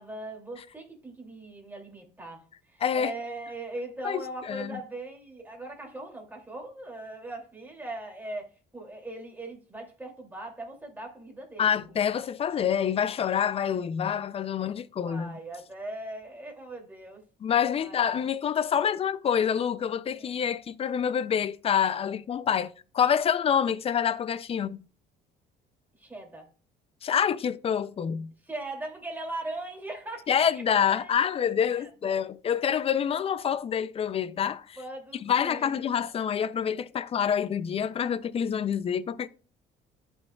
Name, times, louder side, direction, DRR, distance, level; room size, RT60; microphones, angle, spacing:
voice 1, 0.0-2.4 2.7-8.5 8.7-12.0 15.0-17.2 17.8-18.0 20.1-20.3 26.0-26.5 28.5-31.2 31.6-32.1 34.8-35.8, right 2 dB, 10° right, 2.6 m, -40 dB
voice 2, 2.8-3.1 4.0-4.8 11.6-15.3 17.4-24.8 27.0-28.3 30.3-34.8 35.2-39.3, left 8 dB, 35° left, 0.4 m, -27 dB
11.5 x 5.4 x 2.3 m
cardioid pair, 110°, 17 cm